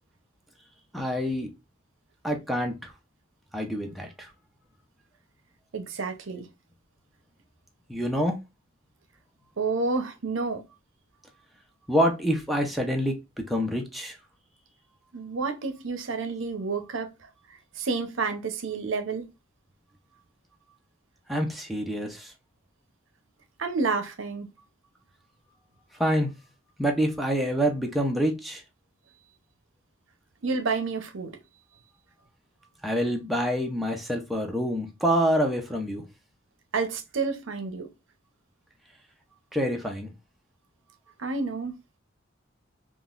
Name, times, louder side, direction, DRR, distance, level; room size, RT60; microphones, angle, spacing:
voice 1, 0.9-1.5 2.2-2.9 3.5-4.3 7.9-8.4 11.9-14.2 21.3-22.3 26.0-26.3 26.8-28.6 32.8-36.0 39.5-40.1, equal, ahead, 0.6 m, -26 dB
voice 2, 5.7-6.5 9.6-10.6 15.1-17.3 17.7-19.3 23.6-24.5 30.4-31.3 36.7-37.9 41.2-41.8, right 4 dB, 70° right, 0.7 m, -29 dB
3.7 x 2.4 x 2.4 m
head